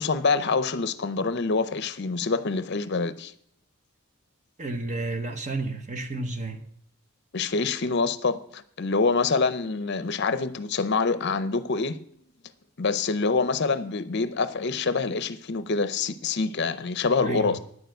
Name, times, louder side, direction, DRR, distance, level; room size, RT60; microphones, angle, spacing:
voice 1, 0.0-3.3 7.3-12.0 12.8-17.6, left 4 dB, 50° left, 0.6 m, -26 dB
voice 2, 4.6-6.6 17.2-17.6, right 2 dB, 35° right, 0.9 m, -31 dB
9.7 x 6.8 x 7.8 m
head